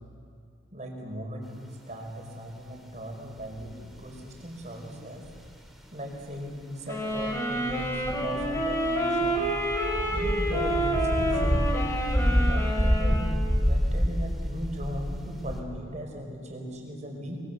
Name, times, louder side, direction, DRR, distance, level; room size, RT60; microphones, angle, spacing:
voice 1, 0.7-5.2 5.9-9.5 10.1-17.4, equal, 40° right, 1 dB, 4.7 m, -38 dB
sound 1, 3.4-4.1 5.2-5.5 6.2-6.4 7.1-15.6, equal, ahead, 2.5 m, -28 dB
sound 2, 6.9-13.4, right 1 dB, 15° left, 6.2 m, -29 dB
24.5 x 23.0 x 6.8 m, 2.4 s
head